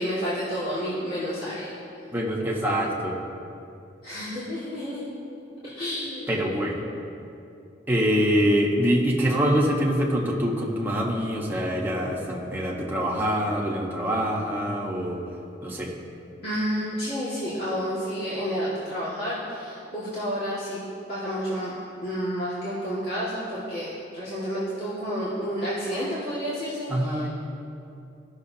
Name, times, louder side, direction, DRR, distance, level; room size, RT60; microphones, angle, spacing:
voice 1, 0.0-1.7 4.0-5.1 5.6-6.3 16.4-20.8 21.1-21.7 22.0-23.9 24.1-27.3, equal, 55° left, -11 dB, 2.0 m, -30 dB
voice 2, 2.1-3.1 6.3-6.8 7.9-15.2 15.6-15.9 26.9-27.3, equal, 10° right, -4 dB, 1.2 m, -24 dB
16.5 x 6.4 x 2.8 m, 2.7 s
head